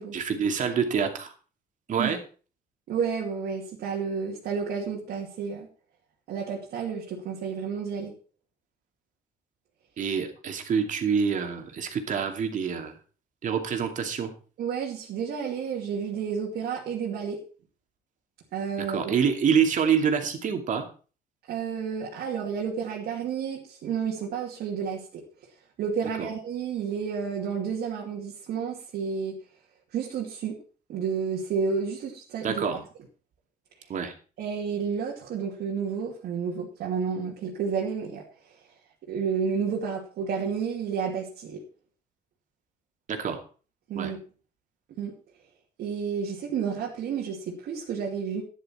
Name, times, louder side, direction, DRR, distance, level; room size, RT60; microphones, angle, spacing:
voice 1, 0.1-1.3 1.9-2.2 10.0-12.9 13.4-14.3 18.8-20.8 26.2-26.3 32.4-32.8 33.9-34.1 43.1-43.4 43.9-44.1, right 7 dB, 50° right, 5 dB, 2.5 m, -26 dB
voice 2, 2.9-5.7 6.3-8.1 14.6-17.4 18.5-19.1 21.5-25.2 25.8-29.4 29.9-30.6 30.9-32.8 34.4-38.2 39.1-41.6 43.9-44.2 45.0-45.1 45.8-48.4, right 6 dB, 70° right, -2 dB, 2.6 m, -31 dB
11.0 x 10.5 x 4.5 m, 0.38 s
cardioid pair, 110°, 17 cm